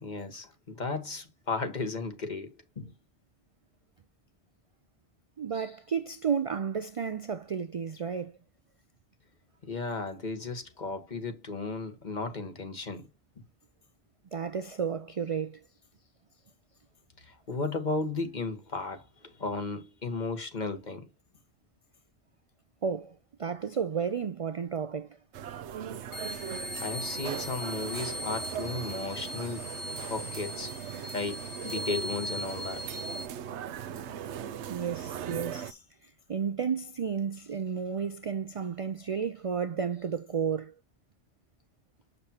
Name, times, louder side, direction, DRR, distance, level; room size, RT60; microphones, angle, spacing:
voice 1, 0.0-2.9 9.6-13.0 17.2-21.1 26.8-30.7 31.1-32.8, left 3 dB, 40° left, 1.5 m, -35 dB
voice 2, 5.4-8.3 14.3-15.6 22.8-25.2 34.7-40.7, right 6 dB, 55° right, 0.4 m, -32 dB
sound 1, 25.3-35.7, right 9 dB, 85° right, 0.9 m, -39 dB
sound 2, 26.1-33.3, left 1 dB, 80° left, 1.9 m, -39 dB
7.2 x 6.7 x 2.8 m
omnidirectional pair, 1.1 m